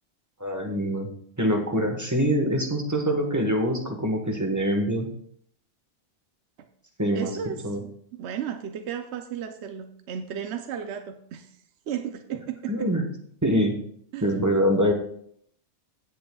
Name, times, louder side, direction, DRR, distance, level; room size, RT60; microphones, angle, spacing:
voice 1, 0.4-1.1 1.4-5.1 7.0-7.4 7.6-7.8 12.7-13.1 13.4-13.8 14.2-14.9, equal, 15° right, 3 dB, 1.2 m, -24 dB
voice 2, 7.1-11.5 11.9-12.9 14.1-14.3, right 8 dB, 70° right, 7 dB, 0.9 m, -34 dB
16.0 x 7.8 x 2.3 m, 0.66 s
omnidirectional pair, 1.2 m